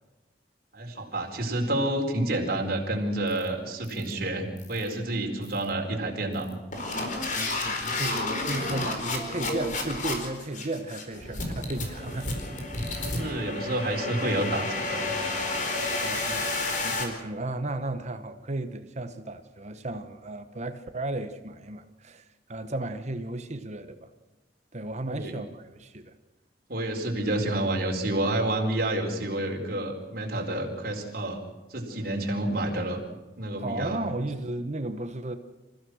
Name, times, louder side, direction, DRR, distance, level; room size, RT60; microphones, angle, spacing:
voice 1, 0.7-6.5 13.0-15.1 25.1-25.3 26.7-31.4 31.7-33.0 33.4-34.0, right 1 dB, 55° right, 4.5 m, -29 dB
sound 1, 3.3-3.5 3.8-4.1 4.6-4.9 5.4-5.7 6.3-17.0, left 2 dB, 45° left, 4.3 m, -31 dB
voice 2, 7.3-12.5 14.4-14.5 16.0-24.1 24.7-26.1 33.6-35.4, right 2 dB, 40° right, 1.1 m, -34 dB
27.5 x 16.0 x 6.4 m
head